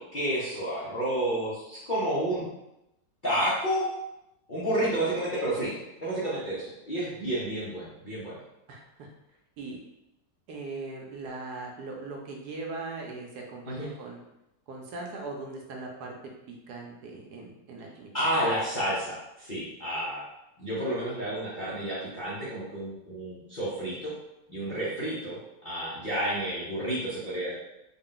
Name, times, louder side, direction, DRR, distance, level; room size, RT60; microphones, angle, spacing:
voice 1, 0.0-2.4 3.2-3.9 4.5-5.7 6.0-8.4 13.7-13.9 18.1-20.2 20.6-24.2 24.5-27.5, right 1 dB, 45° left, -9 dB, 0.7 m, -30 dB
voice 2, 8.7-9.1 9.6-9.8 10.5-14.2 14.7-16.1 16.5-18.3 24.7-24.9, right 3 dB, 70° right, 0 dB, 1.1 m, -40 dB
3.7 x 2.2 x 3.8 m, 0.89 s
omnidirectional pair, 1.9 m